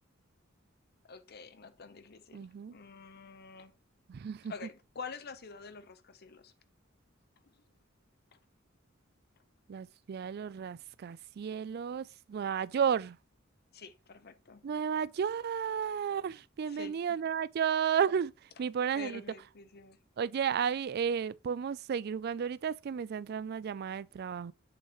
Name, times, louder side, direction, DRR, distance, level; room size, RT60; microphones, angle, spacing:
voice 1, 1.0-3.7 4.5-6.5 13.7-14.7 16.7-17.0 18.9-20.0, left 5 dB, 50° left, 0.8 m, -47 dB
voice 2, 2.3-2.7 4.1-4.5 9.7-13.2 14.6-19.2 20.2-24.5, right 7 dB, 50° right, 0.3 m, -33 dB
7.9 x 6.4 x 3.0 m
head